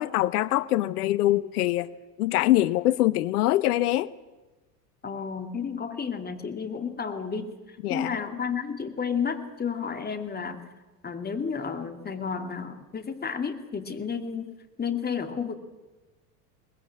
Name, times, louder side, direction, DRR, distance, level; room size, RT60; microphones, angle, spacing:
voice 1, 0.0-1.9 2.2-4.1 7.8-8.2, left 15 dB, 65° left, 19 dB, 0.8 m, -24 dB
voice 2, 5.0-7.5 7.9-10.7 11.0-14.5 14.8-15.5, left 6 dB, 20° left, 7 dB, 2.4 m, -31 dB
22.0 x 20.0 x 8.6 m, 1.2 s
hypercardioid pair, 85°, 49 cm